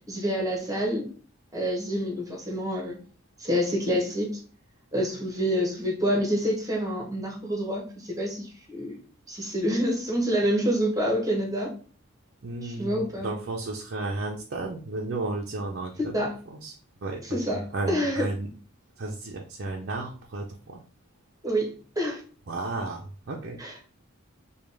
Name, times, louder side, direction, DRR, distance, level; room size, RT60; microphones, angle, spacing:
voice 1, 0.1-1.1 1.5-3.0 3.4-4.3 4.9-9.0 9.3-11.7 12.6-13.3 16.1-16.3 17.2-18.3 21.4-22.2 23.6-23.7, equal, 15° right, -1 dB, 1.0 m, -27 dB
voice 2, 12.4-16.8 17.0-18.5 19.0-20.8 22.5-23.6, right 2 dB, 50° right, -1 dB, 0.6 m, -33 dB
5.0 x 2.3 x 3.4 m, 0.39 s
head